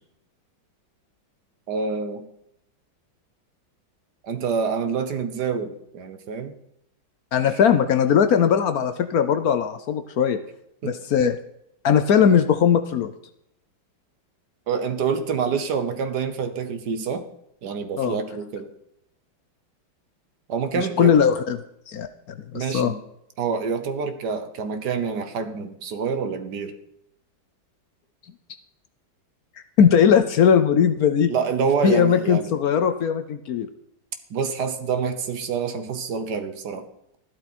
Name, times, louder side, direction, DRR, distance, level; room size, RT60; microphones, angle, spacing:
voice 1, 1.7-2.3 4.2-6.6 7.5-7.6 10.8-10.9 14.7-17.3 17.6-18.7 20.5-21.2 22.5-23.0 23.4-26.8 31.3-32.5 34.3-36.9, right 6 dB, 60° right, 10 dB, 1.5 m, -27 dB
voice 2, 7.3-10.4 10.8-11.4 11.8-13.1 18.0-18.2 20.7-21.6 21.9-22.1 22.5-22.9 29.8-31.3 31.8-33.7, left 7 dB, 65° left, 10 dB, 1.0 m, -19 dB
13.5 x 12.0 x 4.2 m, 0.77 s
omnidirectional pair, 2.2 m